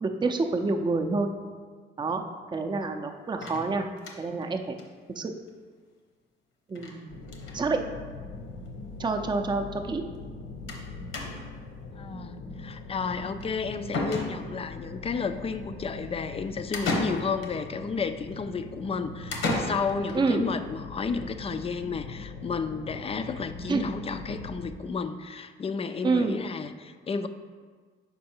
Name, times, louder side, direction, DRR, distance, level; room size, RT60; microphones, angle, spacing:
voice 1, 0.0-1.3 2.0-2.2 2.5-3.9 4.2-4.8 5.2-5.3 6.7-7.2 7.5-7.8 9.0-10.0 20.1-20.4 23.7-23.8 26.0-26.4, right 3 dB, 20° right, 4 dB, 0.5 m, -27 dB
sound 1, 3.4-4.4 4.8-4.9 5.2-5.3 5.5-5.6 6.8-7.0 7.2-7.6 8.5-8.6 8.8-8.9 10.7-10.9 11.1-11.6 13.4-13.5 13.9-14.7 16.7-17.6 19.3-20.2, left 2 dB, 80° left, 1.1 m, -32 dB
sound 2, 7.1-24.7, left 3 dB, 60° left, 0.7 m, -42 dB
voice 2, 12.0-27.3, left 5 dB, 30° left, 10 dB, 0.4 m, -32 dB
5.4 x 4.6 x 4.4 m, 1.5 s
cardioid pair, 90°, 20 cm